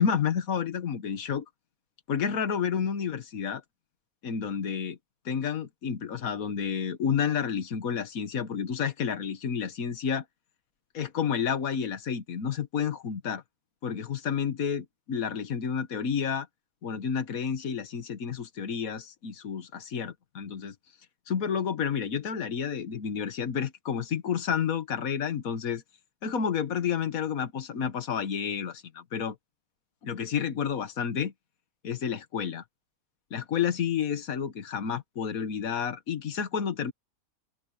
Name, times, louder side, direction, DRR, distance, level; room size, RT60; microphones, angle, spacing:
voice 1, 0.0-1.5 2.1-3.6 4.2-5.0 5.3-10.2 10.9-13.4 13.8-16.5 16.8-20.8 21.3-25.8 26.2-29.4 30.0-31.3 31.8-32.6 33.3-36.9, left 7 dB, 70° left, 1.8 m, -30 dB
open air
omnidirectional pair, 1.5 m